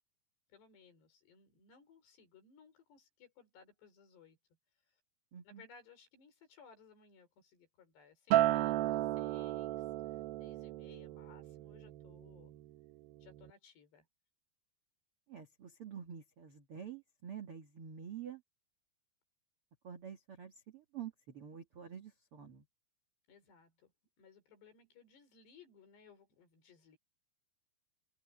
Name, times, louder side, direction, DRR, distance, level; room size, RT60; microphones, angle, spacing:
voice 1, 0.5-4.4 4.9-5.0 5.4-12.5 13.2-14.1 23.3-23.9 24.2-27.0, left 6 dB, 70° left, 7.1 m, -62 dB
voice 2, 5.3-5.6 15.3-18.4 19.8-22.6, right 8 dB, 55° right, 1.5 m, -48 dB
Acoustic guitar, 8.3-12.7 13.1-13.5, right 14 dB, 70° right, 2.4 m, -34 dB
omnidirectional pair, 5.0 m